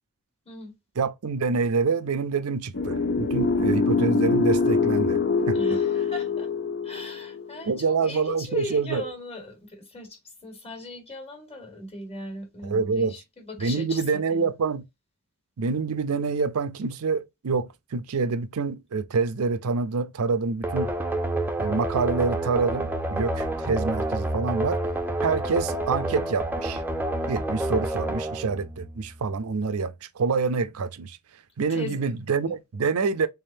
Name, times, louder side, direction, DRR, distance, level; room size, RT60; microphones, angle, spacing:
voice 1, 1.0-5.2 5.5-5.6 7.7-9.0 12.6-13.1 13.6-14.8 15.6-20.9 21.6-24.8 25.2-26.8 27.3-31.2 31.6-33.3, right 4 dB, 70° right, 0.5 m, -26 dB
sound 1, 2.7-7.8, left 4 dB, 50° left, 0.5 m, -24 dB
voice 2, 5.5-6.5 6.8-14.5 31.7-32.1 32.5-32.6, left 2 dB, 30° left, 1.4 m, -38 dB
sound 2, 20.6-29.3, right 1 dB, 10° right, 0.5 m, -29 dB
3.6 x 3.5 x 2.6 m
head